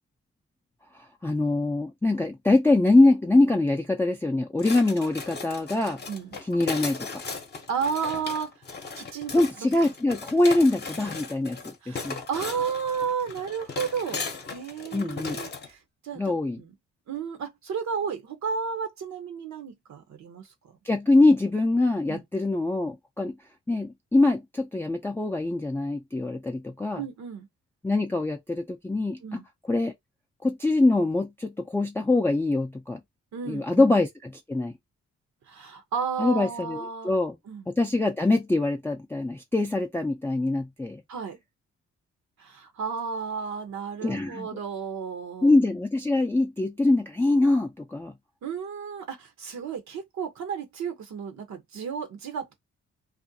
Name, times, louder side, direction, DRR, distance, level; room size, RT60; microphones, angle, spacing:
voice 1, 1.2-6.0 6.5-7.2 9.3-12.2 14.9-15.4 16.2-16.6 20.9-23.3 23.7-27.0 27.8-29.4 29.7-29.9 30.4-33.0 33.5-34.7 36.2-37.4 37.7-41.0 44.0-44.5 45.4-48.1, left 2 dB, 10° left, 0.4 m, -23 dB
sound 1, 4.6-15.7, left 4 dB, 35° left, 0.8 m, -37 dB
voice 2, 6.1-6.4 7.7-8.6 8.9-9.7 11.8-16.7 17.1-20.5 22.1-22.2 27.0-27.5 29.2-29.4 33.3-33.8 35.5-37.2 37.5-37.7 41.1-41.4 42.4-45.5 48.4-52.5, right 6 dB, 70° right, 0.7 m, -33 dB
2.5 x 2.2 x 2.6 m
cardioid pair, 65°, 30 cm